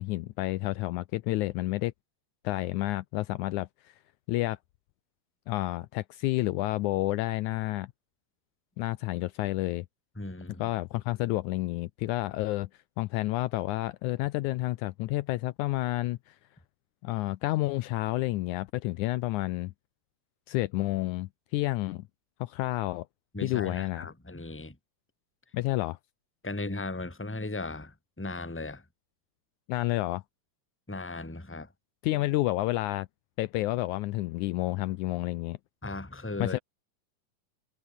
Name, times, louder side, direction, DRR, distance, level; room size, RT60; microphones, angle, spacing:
voice 1, 0.0-1.9 2.4-3.9 4.3-4.6 5.5-7.9 8.8-9.9 10.6-12.7 13.0-16.4 17.0-19.7 20.5-22.1 22.4-23.1 23.4-24.1 25.5-26.0 29.7-30.2 32.0-33.1 33.4-35.6 36.4-36.6, left 18 dB, 80° left, 1.9 m, -30 dB
voice 2, 10.2-10.7 23.3-24.8 26.4-28.8 30.9-31.7 35.8-36.6, left 2 dB, 5° left, 2.1 m, -37 dB
omnidirectional pair, 3.7 m